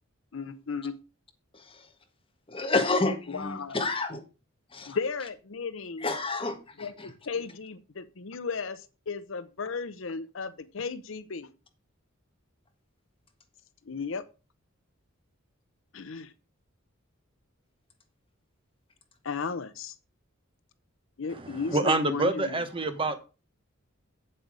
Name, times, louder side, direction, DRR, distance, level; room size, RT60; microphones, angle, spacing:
voice 1, 0.3-1.0 3.3-3.8 4.9-6.1 6.8-11.5 13.9-14.2 15.9-16.3 19.2-20.0 21.2-22.6, left 5 dB, 65° left, 0.7 m, -35 dB
voice 2, 1.5-1.9 2.5-4.2 4.7-5.0 6.0-7.1, left 3 dB, 25° left, 1.6 m, -29 dB
voice 3, 21.3-23.1, right 2 dB, 25° right, 1.0 m, -27 dB
8.1 x 7.7 x 4.8 m
head